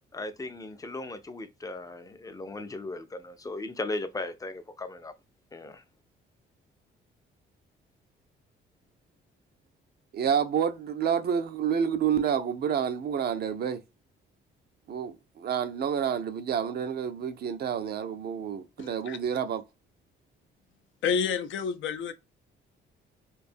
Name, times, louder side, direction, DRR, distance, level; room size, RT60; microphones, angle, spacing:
voice 1, 0.1-5.2 5.5-5.8, left 2 dB, 20° left, 0.4 m, -37 dB
voice 2, 10.1-13.8 14.9-19.6, right 8 dB, 55° right, 0.5 m, -29 dB
voice 3, 18.8-19.2 21.0-22.1, left 6 dB, 75° left, 0.5 m, -29 dB
2.5 x 2.3 x 2.5 m
cardioid pair, 90°, 20 cm